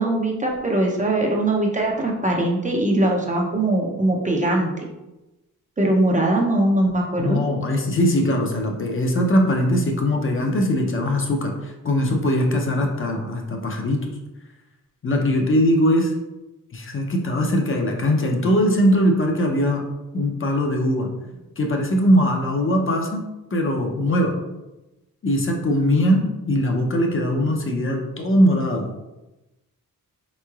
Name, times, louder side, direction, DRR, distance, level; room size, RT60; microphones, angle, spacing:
voice 1, 0.0-4.8 5.8-7.4, right 1 dB, 25° right, -1 dB, 0.5 m, -21 dB
voice 2, 7.2-14.0 15.0-16.1 16.7-19.8 20.1-21.1 21.6-23.2 23.5-24.3 25.2-28.9, equal, 40° left, 1 dB, 0.6 m, -21 dB
3.6 x 3.1 x 2.3 m, 1.0 s
wide cardioid pair, 100°, 34 cm